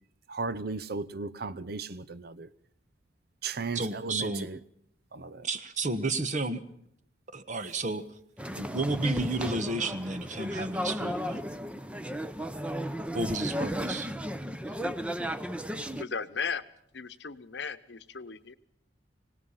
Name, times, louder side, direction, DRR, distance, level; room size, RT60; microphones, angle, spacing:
voice 1, 0.3-2.5 3.4-4.6 5.1-5.5, right 4 dB, 60° right, 0.7 m, -36 dB
voice 2, 3.7-4.5 5.4-6.6 7.3-8.0 8.6-11.4 13.1-14.1, right 2 dB, 40° right, 1.3 m, -31 dB
sound 1, 8.4-16.0, equal, 5° right, 0.8 m, -34 dB
voice 3, 16.0-16.6 16.9-18.5, left 5 dB, 70° left, 0.9 m, -36 dB
25.0 x 18.0 x 5.7 m
head